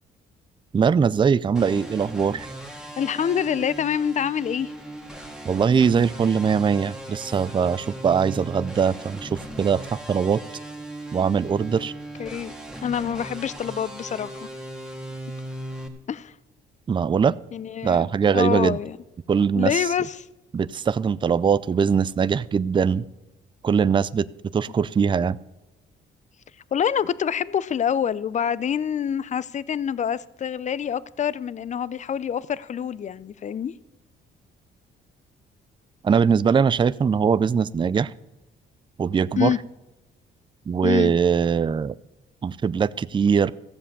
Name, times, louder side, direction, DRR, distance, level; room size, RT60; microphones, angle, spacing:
voice 1, 0.7-2.5 5.4-10.4 11.1-11.9 16.9-17.3 17.8-18.8 19.3-19.8 20.5-23.1 23.6-24.3 24.5-25.4 36.0-38.1 39.0-39.5 40.7-41.9 42.4-43.5, right 6 dB, 25° right, 0.4 m, -21 dB
sound 1, 1.5-15.9, right 1 dB, 5° right, 1.8 m, -38 dB
voice 2, 3.0-4.7 11.8-11.9 12.2-12.5 12.8-14.5 16.1-16.3 17.5-19.0 19.6-20.3 26.7-33.7 39.4-39.6 40.8-41.1, left 8 dB, 35° left, 0.5 m, -26 dB
14.5 x 7.5 x 6.8 m
cardioid pair, 90°, 20 cm